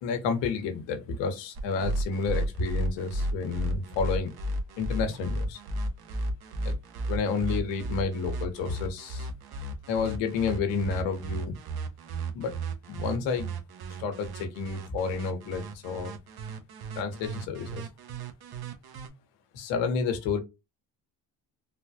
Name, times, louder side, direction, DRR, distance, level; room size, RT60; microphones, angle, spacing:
voice 1, 0.0-4.3 4.8-5.6 6.6-6.7 7.1-9.3 9.9-11.5 12.3-12.6 12.9-13.6 14.0-16.1 16.9-17.9 19.5-20.4, left 5 dB, 85° left, 1.2 m, -30 dB
sound 1, 1.6-19.1, right 1 dB, 60° right, 1.1 m, -34 dB
4.0 x 2.3 x 2.7 m
supercardioid pair, 80°, 43 cm